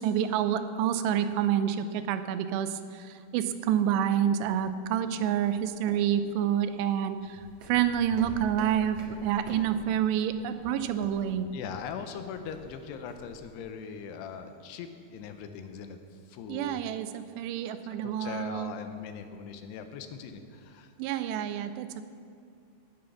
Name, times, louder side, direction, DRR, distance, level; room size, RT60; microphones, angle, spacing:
voice 1, 0.0-7.4 7.7-11.5 16.5-18.7 21.0-22.0, right 9 dB, 85° right, 10 dB, 2.8 m, -28 dB
sound 1, 4.3-13.6, equal, 55° right, 2.0 m, -50 dB
voice 2, 11.5-16.0 16.3-16.8 18.0-20.9, left 7 dB, 80° left, 8 dB, 2.8 m, -40 dB
17.0 x 6.3 x 5.9 m, 2.5 s
omnidirectional pair, 4.8 m